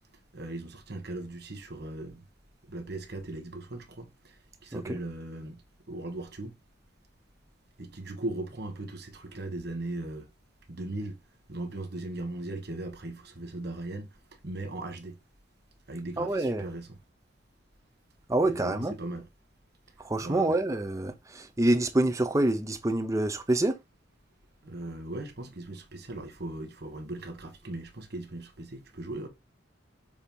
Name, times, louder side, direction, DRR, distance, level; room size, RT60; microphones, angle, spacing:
voice 1, 0.3-2.3 2.6-6.5 7.8-10.3 10.7-11.2 11.5-15.2 15.9-17.0 18.4-19.3 20.2-20.6 24.6-29.3, right 2 dB, 55° right, 1.3 m, -38 dB
voice 2, 16.2-16.6 18.3-18.9 20.0-23.7, right 1 dB, 15° right, 0.7 m, -26 dB
7.0 x 2.9 x 5.3 m
head